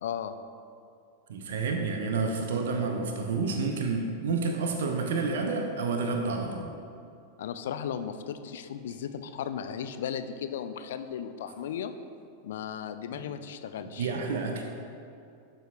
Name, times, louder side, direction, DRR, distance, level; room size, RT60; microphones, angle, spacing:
voice 1, 0.0-0.3 7.4-11.9 12.4-14.1, left 8 dB, 60° left, 10 dB, 0.4 m, -36 dB
voice 2, 1.3-6.7 13.1-13.2 14.0-14.6, right 4 dB, 60° right, 3 dB, 0.7 m, -29 dB
12.0 x 6.4 x 2.4 m, 2.5 s
figure-of-eight pair, 90°, 0 cm